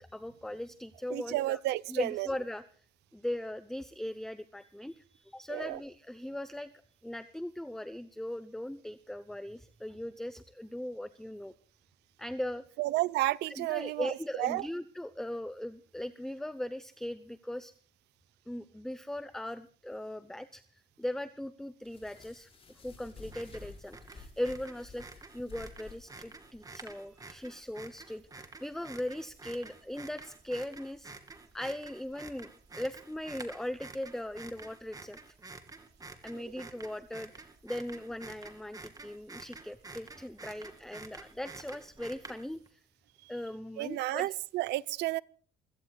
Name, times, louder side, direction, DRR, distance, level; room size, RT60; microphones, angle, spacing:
voice 1, 0.0-1.6 1.9-2.6 3.1-6.7 7.0-11.5 12.2-12.6 13.5-17.7 18.5-25.0 25.3-31.1 31.5-35.4 36.2-42.8 43.3-44.3, left 1 dB, 5° left, 0.8 m, -39 dB
voice 2, 1.1-2.3 5.5-5.8 12.8-14.7 36.3-36.6 43.2-43.3 43.8-45.2, right 17 dB, 85° right, 0.8 m, -32 dB
sound 1, 21.8-26.6, left 4 dB, 35° left, 5.4 m, -52 dB
sound 2, 23.2-42.7, right 3 dB, 20° right, 2.6 m, -50 dB
28.0 x 17.0 x 2.4 m
cardioid pair, 110°, 17 cm